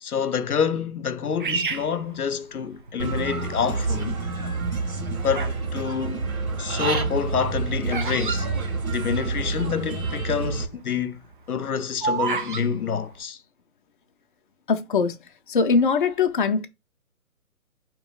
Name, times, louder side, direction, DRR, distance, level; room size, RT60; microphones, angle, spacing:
voice 1, 0.0-4.2 5.2-6.3 6.6-8.5 8.9-11.2 11.5-13.4, left 7 dB, 90° left, 0.6 m, -27 dB
Bird vocalization bird call bird song, 1.4-2.9 3.5-4.0 4.7-5.7 5.9-9.4 9.7-9.8 10.0-10.3 10.8-12.7, right 5 dB, 35° right, 0.5 m, -30 dB
Human voice / Bird, 3.0-10.6, right 4 dB, 70° right, 1.4 m, -28 dB
voice 2, 14.7-15.2 15.5-16.7, left 5 dB, 35° left, 0.5 m, -21 dB
4.7 x 3.0 x 3.7 m
figure-of-eight pair, 135°, 43 cm